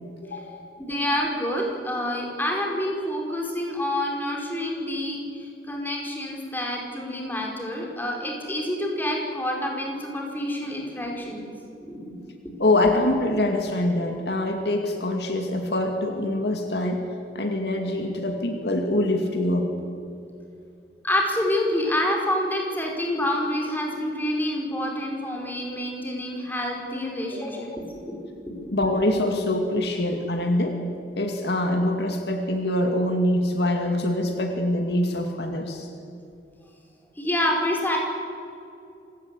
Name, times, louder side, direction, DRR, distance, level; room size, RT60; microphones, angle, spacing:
voice 1, 0.2-0.6 12.6-17.0 17.3-19.7 28.7-30.8 31.2-35.9, left 1 dB, 70° left, 4 dB, 2.3 m, -24 dB
voice 2, 0.8-11.5 11.8-12.1 12.4-12.6 21.0-28.2 28.5-28.7 37.2-38.0, left 1 dB, 10° left, 0 dB, 4.9 m, -28 dB
27.0 x 17.5 x 8.4 m, 2.7 s
head